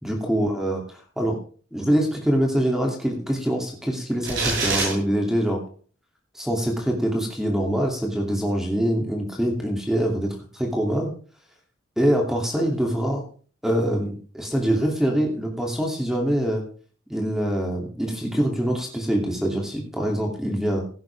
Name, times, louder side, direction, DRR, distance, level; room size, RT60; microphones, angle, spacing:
voice 1, 0.0-0.8 1.2-1.4 1.7-5.6 6.3-10.3 10.7-11.1 12.0-13.2 13.6-16.6 17.1-20.8, equal, ahead, 1 dB, 2.7 m, -24 dB
sound 1, 4.2-4.9, right 3 dB, 85° right, 7.6 m, -24 dB
17.0 x 10.5 x 3.5 m, 0.40 s
head